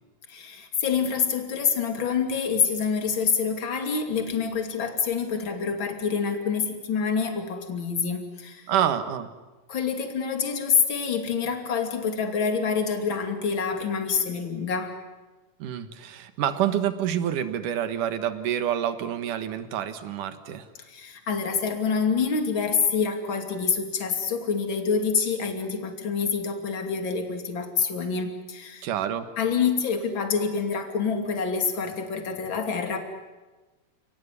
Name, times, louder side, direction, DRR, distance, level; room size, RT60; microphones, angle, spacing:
voice 1, 0.3-8.7 9.7-15.0 20.9-28.9 29.4-33.0, left 6 dB, 40° left, 5 dB, 3.2 m, -26 dB
voice 2, 8.7-9.3 15.6-20.7 28.8-29.3, right 10 dB, 75° right, 10 dB, 2.9 m, -27 dB
29.5 x 18.5 x 9.8 m, 1.2 s
omnidirectional pair, 3.8 m